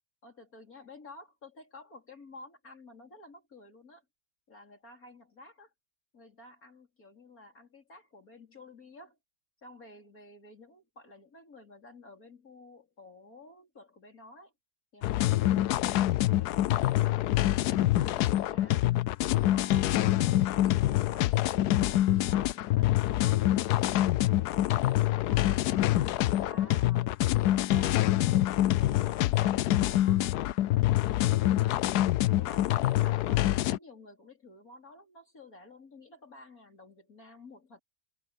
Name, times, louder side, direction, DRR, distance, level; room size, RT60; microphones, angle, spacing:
voice 1, 0.2-4.0 4.5-5.7 6.1-9.2 9.6-14.5 14.9-18.9 19.3-31.8 32.4-37.8, left 2 dB, 55° left, 4.6 m, -52 dB
sound 1, 15.0-33.8, left 14 dB, 75° left, 1.1 m, -26 dB
omnidirectional pair, 1.8 m